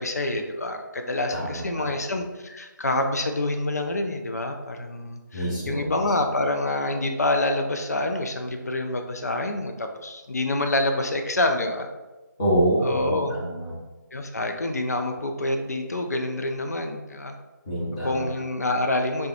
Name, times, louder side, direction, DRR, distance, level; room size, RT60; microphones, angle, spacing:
voice 1, 0.0-11.9 12.8-13.3 14.1-17.4 18.0-19.3, left 2 dB, 50° left, 5 dB, 0.4 m, -27 dB
voice 2, 1.3-1.9 5.3-6.0 12.4-13.7 17.7-18.2, right 1 dB, 20° left, -8 dB, 0.8 m, -26 dB
3.3 x 2.2 x 2.8 m, 1.2 s
figure-of-eight pair, 155°, 11 cm